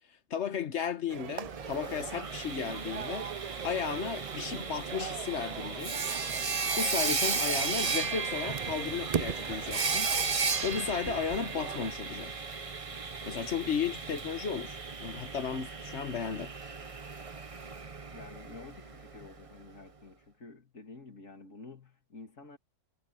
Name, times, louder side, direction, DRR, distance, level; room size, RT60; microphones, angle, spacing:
voice 1, 0.3-3.3 3.6-6.0 6.5-10.1 10.6-12.3 13.3-16.5, left 7 dB, 65° left, 1.4 m, -34 dB
sound 1, 1.1-11.9, right 8 dB, 55° right, 0.4 m, -40 dB
Sawing, 1.4-19.3, right 4 dB, 30° right, 0.9 m, -35 dB
voice 2, 18.1-22.6, left 3 dB, 80° left, 3.1 m, -50 dB
omnidirectional pair, 1.3 m